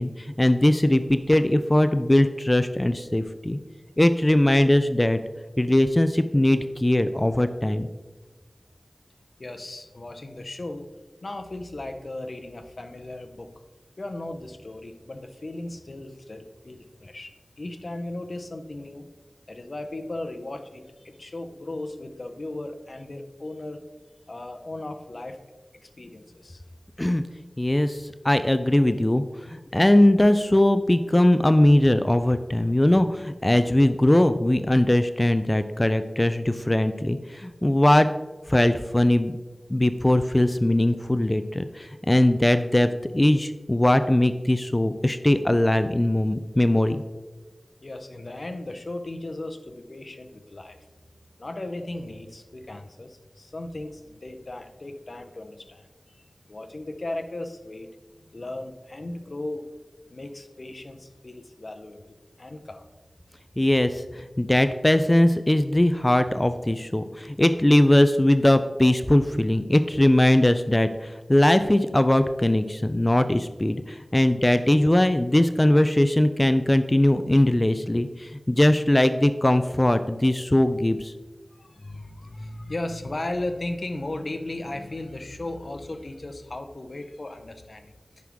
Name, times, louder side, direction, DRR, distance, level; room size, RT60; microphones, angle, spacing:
voice 1, 0.0-3.6 4.0-5.2 5.6-7.9 27.0-27.2 27.6-38.1 38.5-39.4 39.7-47.0 63.6-81.1, left 1 dB, 25° left, 10 dB, 0.4 m, -20 dB
voice 2, 9.4-10.9 11.2-13.6 14.0-19.1 19.5-23.9 24.3-25.5 25.8-26.6 47.8-50.9 51.4-57.9 58.3-59.7 60.1-62.9 81.5-87.9, left 2 dB, 65° left, 7 dB, 0.8 m, -36 dB
9.5 x 6.2 x 3.6 m, 1.2 s
wide cardioid pair, 50°, 0 cm